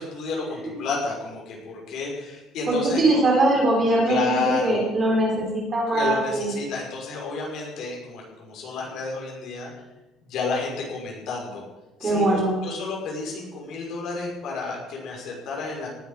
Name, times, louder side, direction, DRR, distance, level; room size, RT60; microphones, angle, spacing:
voice 1, 0.0-3.2 4.1-4.9 5.9-9.7 10.3-11.6 12.0-15.9, left 4 dB, 50° left, -1 dB, 5.6 m, -31 dB
voice 2, 2.7-6.5 12.0-12.5, right 1 dB, 20° right, -1 dB, 4.0 m, -22 dB
19.0 x 9.7 x 5.7 m, 1.1 s
cardioid pair, 175°, 0 cm